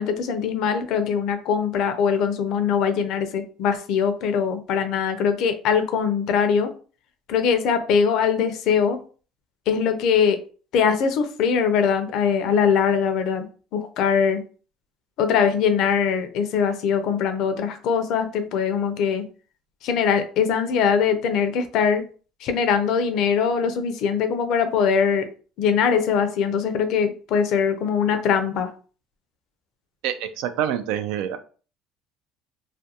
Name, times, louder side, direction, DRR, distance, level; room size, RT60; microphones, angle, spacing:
voice 1, 0.0-6.7 7.3-9.0 9.7-10.4 10.7-13.5 13.7-14.4 15.2-19.2 19.8-22.0 22.4-25.3 25.6-28.7, left 6 dB, 60° left, 9 dB, 0.4 m, -22 dB
voice 2, 30.0-31.4, right 10 dB, 80° right, 10 dB, 0.3 m, -26 dB
2.4 x 2.2 x 2.8 m, 0.39 s
cardioid pair, 140°, 0 cm